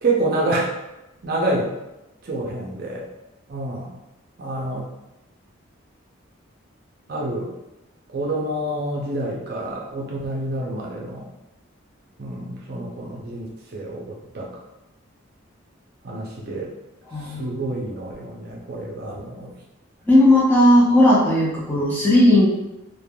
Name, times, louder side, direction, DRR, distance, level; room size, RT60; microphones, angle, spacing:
voice 1, 0.0-0.7 1.2-1.7 2.2-3.1 3.5-4.0 4.4-4.9 7.1-7.5 8.1-11.3 12.2-14.6 16.0-16.7 17.2-19.5, right 2 dB, 50° right, -2 dB, 0.5 m, -27 dB
voice 2, 17.1-17.6 20.1-22.5, left 1 dB, 10° left, -7 dB, 0.5 m, -16 dB
3.3 x 2.1 x 2.2 m, 0.97 s
head